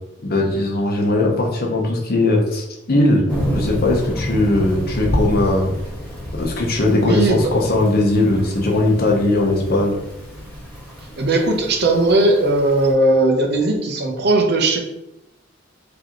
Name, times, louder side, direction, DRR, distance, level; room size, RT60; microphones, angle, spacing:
voice 1, 0.2-5.7 6.3-9.9, left 2 dB, 55° left, 0 dB, 0.8 m, -19 dB
Thunder / Rain, 3.3-12.9, equal, 10° left, 1.2 m, -29 dB
voice 2, 7.0-7.5 11.2-14.8, right 2 dB, 55° right, 3 dB, 0.7 m, -17 dB
3.3 x 2.9 x 3.7 m, 0.85 s
head